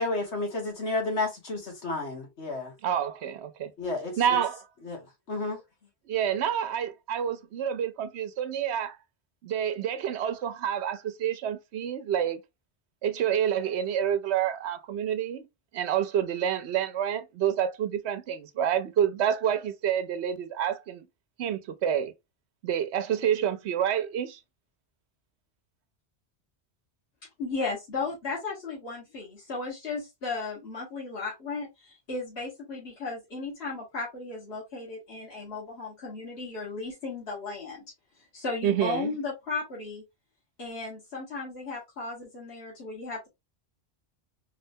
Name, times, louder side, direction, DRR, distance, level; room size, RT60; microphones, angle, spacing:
voice 1, 0.0-2.7 3.8-4.4 4.8-5.0 5.3-5.6, left 2 dB, 90° left, 1.9 m, -31 dB
voice 2, 2.8-3.7 4.2-4.6 6.1-9.0 9.4-12.4 13.0-15.5 15.7-21.0 21.4-22.1 22.6-24.4 38.6-39.1, right 9 dB, 85° right, 0.9 m, -28 dB
voice 3, 27.4-37.8 38.3-40.0 40.6-43.3, left 3 dB, 65° left, 1.9 m, -35 dB
3.9 x 3.3 x 2.7 m
omnidirectional pair, 1.1 m